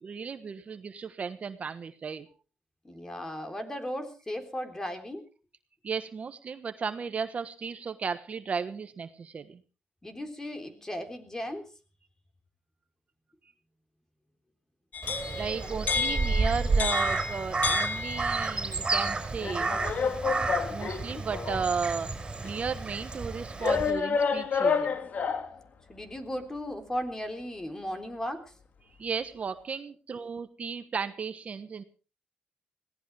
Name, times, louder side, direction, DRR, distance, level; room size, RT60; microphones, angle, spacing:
voice 1, 0.0-2.3 5.8-9.6 15.2-19.8 20.7-22.1 22.4-24.9 29.0-31.8, right 5 dB, 45° right, 10 dB, 1.2 m, -35 dB
voice 2, 2.8-5.2 10.0-11.7 15.6-15.8 25.9-28.4, equal, 15° left, 6 dB, 3.6 m, -36 dB
sound 1, 14.9-18.6 19.4-21.7 22.4-22.5 23.6-25.6, left 5 dB, 55° left, 1.7 m, -30 dB
Crow, 15.0-23.9, right 3 dB, 25° right, 5.7 m, -31 dB
21.5 x 17.5 x 3.4 m, 0.36 s
cardioid pair, 95°, 3 cm